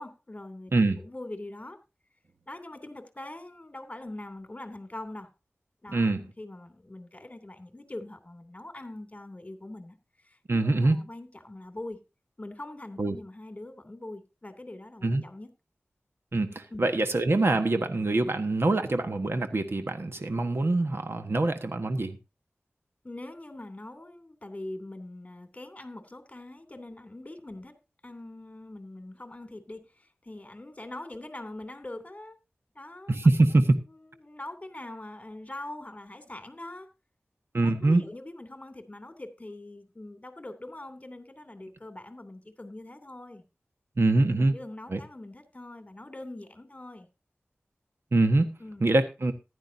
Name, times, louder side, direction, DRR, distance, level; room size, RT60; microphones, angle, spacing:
voice 1, 0.0-0.7 1.0-1.8 2.5-5.3 5.8-12.0 12.4-15.5 16.7-16.9 23.0-27.7 28.0-32.4 32.7-33.2 33.9-36.9 37.6-43.4 44.3-47.1 48.6-48.9, left 1 dB, 30° left, 8 dB, 2.8 m, -43 dB
voice 2, 5.9-6.2 10.5-11.0 13.0-13.2 15.0-15.2 16.3-22.2 33.1-33.8 37.5-38.0 44.0-44.5 44.9-45.0 48.1-49.3, right 2 dB, 60° right, 7 dB, 1.3 m, -24 dB
15.0 x 11.0 x 2.7 m, 0.27 s
wide cardioid pair, 55°, 5 cm